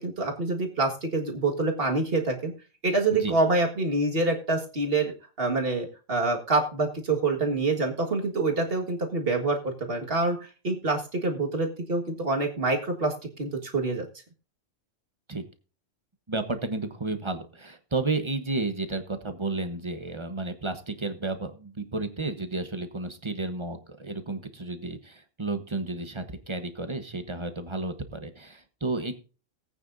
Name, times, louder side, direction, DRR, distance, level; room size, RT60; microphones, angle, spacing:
voice 1, 0.0-2.5 2.8-14.1, right 3 dB, 45° right, 2 dB, 2.0 m, -26 dB
voice 2, 16.3-29.1, right 3 dB, 25° right, 8 dB, 1.1 m, -32 dB
19.0 x 9.0 x 2.6 m, 0.35 s
omnidirectional pair, 1.3 m